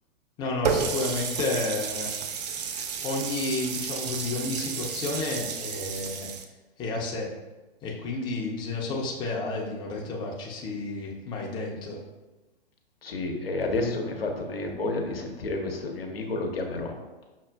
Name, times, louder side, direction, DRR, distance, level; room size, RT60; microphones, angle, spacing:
voice 1, 0.4-2.1 3.0-6.3 6.8-7.3 7.8-12.0, left 2 dB, 15° left, -2 dB, 0.5 m, -31 dB
Water tap faucet, 0.6-6.4, right 6 dB, 45° right, 0.4 m, -32 dB
voice 2, 13.0-16.9, left 2 dB, 85° left, 2 dB, 0.7 m, -30 dB
5.7 x 2.4 x 2.2 m, 1.1 s
figure-of-eight pair, 115°, 29 cm